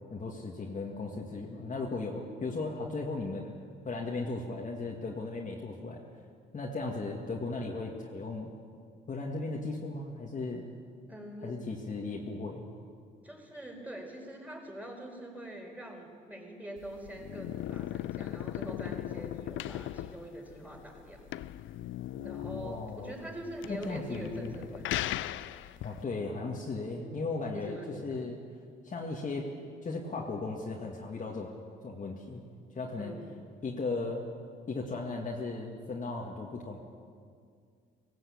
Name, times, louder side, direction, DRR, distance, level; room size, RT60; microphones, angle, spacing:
voice 1, 0.1-3.6 3.8-6.0 6.5-8.5 9.1-10.7 11.4-12.6 22.4-23.1 23.7-24.6 25.8-28.4 28.8-29.5 29.8-31.5 31.8-32.4 32.8-33.1 33.6-34.3 34.7-36.8, left 3 dB, 40° left, -1 dB, 2.1 m, -36 dB
voice 2, 11.1-11.6 13.2-21.5 22.2-25.2 26.1-26.3 27.5-28.0 32.9-33.4, right 1 dB, 5° right, 1 dB, 4.7 m, -44 dB
sound 1, 16.8-26.0, left 13 dB, 80° left, 0.5 m, -38 dB
18.0 x 17.0 x 8.6 m, 2.2 s
cardioid pair, 90°, 20 cm